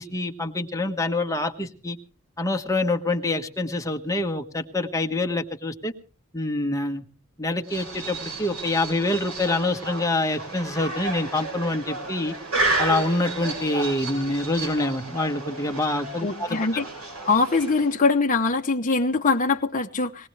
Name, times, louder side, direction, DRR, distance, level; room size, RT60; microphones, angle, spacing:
voice 1, 0.0-2.0 2.4-5.9 6.3-7.0 7.4-12.3 12.8-16.6, left 2 dB, 15° left, 1.4 m, -26 dB
sound 1, 7.7-18.1, right 2 dB, 85° right, 6.4 m, -32 dB
voice 2, 16.2-16.9 17.2-20.3, left 3 dB, 35° left, 0.9 m, -22 dB
21.0 x 18.0 x 3.3 m
head